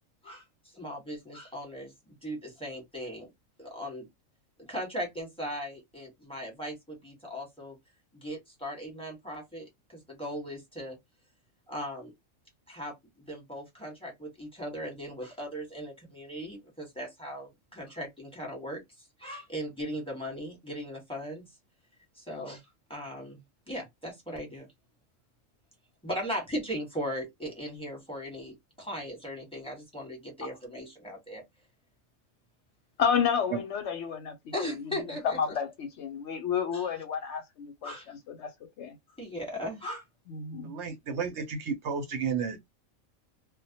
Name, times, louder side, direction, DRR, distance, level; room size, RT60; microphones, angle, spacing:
voice 1, 0.7-3.3 3.6-4.1 4.6-7.8 8.1-11.0 11.7-12.1 12.7-18.8 19.2-21.5 22.1-22.6 22.9-23.4 23.7-24.7 26.0-31.4 34.5-35.4 36.7-36.9 37.8-38.1 39.2-40.0, equal, 5° left, 0.9 m, -38 dB
voice 2, 33.0-38.5 38.8-39.0 40.3-40.7, left 7 dB, 65° left, 0.8 m, -31 dB
voice 3, 40.6-42.8, right 6 dB, 70° right, 0.8 m, -33 dB
2.2 x 2.1 x 2.7 m
omnidirectional pair, 1.4 m